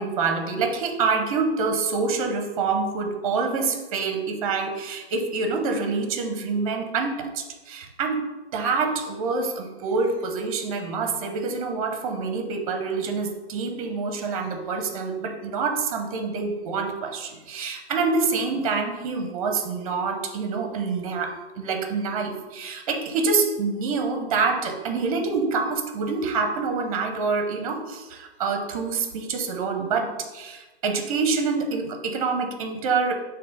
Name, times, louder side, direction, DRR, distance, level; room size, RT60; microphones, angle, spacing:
voice 1, 0.0-8.3 8.5-33.1, right 4 dB, 35° right, 4 dB, 1.0 m, -26 dB
6.6 x 3.1 x 5.3 m, 1.2 s
hypercardioid pair, 140°, 33 cm